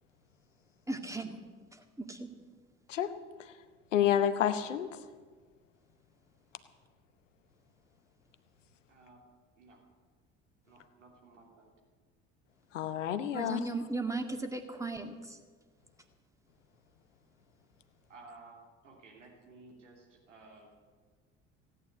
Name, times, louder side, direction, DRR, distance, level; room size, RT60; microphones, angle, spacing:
voice 1, 0.9-1.4 2.0-2.3 13.3-15.4, right 2 dB, 10° right, 5 dB, 2.0 m, -36 dB
voice 2, 3.9-4.9 12.7-13.6, left 10 dB, 80° left, 11 dB, 0.9 m, -29 dB
voice 3, 8.9-9.2 9.6-9.8 10.7-11.7 18.1-18.6 18.8-20.8, right 3 dB, 85° right, 0 dB, 3.1 m, -55 dB
16.5 x 9.2 x 8.0 m, 1.5 s
figure-of-eight pair, 60°, 37 cm